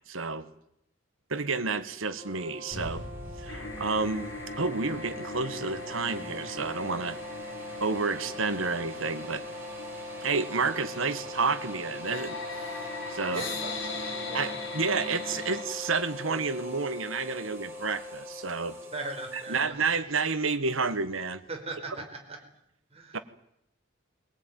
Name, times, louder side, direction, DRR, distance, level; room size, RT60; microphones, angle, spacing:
voice 1, 0.1-0.5 1.3-3.0 3.4-4.3 4.6-7.2 7.8-9.4 10.2-12.4 13.1-13.4 14.3-18.8 19.3-21.4 23.1-23.2, right 4 dB, 90° right, 11 dB, 1.6 m, -30 dB
sound 1, 2.2-19.6, left 1 dB, 10° right, 4.8 m, -41 dB
sound 2, 2.7-7.5, equal, 55° left, 7.3 m, -45 dB
sound 3, 3.5-15.6, left 3 dB, 70° left, 4.7 m, -41 dB
voice 2, 13.3-14.4 18.9-19.7 21.5-22.4 22.9-23.2, right 2 dB, 30° right, 2 dB, 5.0 m, -39 dB
22.5 x 18.5 x 9.4 m, 0.79 s
head